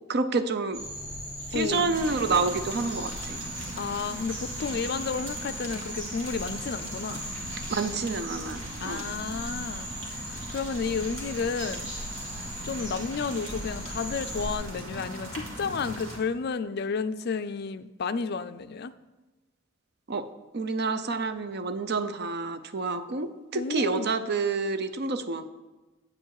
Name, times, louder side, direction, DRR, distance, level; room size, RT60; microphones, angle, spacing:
voice 1, 0.1-0.8 1.5-3.4 7.7-9.1 20.1-20.3 20.5-25.4, right 4 dB, 55° right, 10 dB, 0.6 m, -28 dB
sound 1, 0.7-14.6, equal, 30° right, 3.8 m, -39 dB
voice 2, 1.5-1.9 3.8-7.3 8.8-10.2 10.5-11.9 12.6-18.9 23.5-24.2, left 5 dB, 55° left, 12 dB, 0.4 m, -32 dB
sound 2, 1.9-16.2, right 1 dB, 80° right, 2.0 m, -40 dB
8.4 x 7.8 x 4.8 m, 1.1 s
head